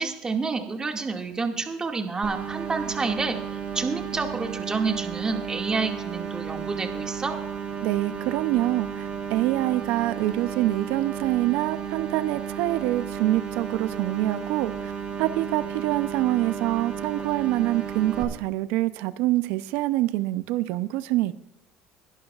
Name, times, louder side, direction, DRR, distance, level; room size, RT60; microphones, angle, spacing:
voice 1, 0.0-7.4, right 4 dB, 25° right, 3 dB, 2.1 m, -29 dB
sound 1, 2.2-18.2, right 7 dB, 40° right, 3.5 m, -33 dB
voice 2, 7.8-14.9 15.2-21.3, right 16 dB, 75° right, 14 dB, 0.6 m, -25 dB
21.5 x 11.5 x 2.4 m, 0.93 s
supercardioid pair, 90°, 3 cm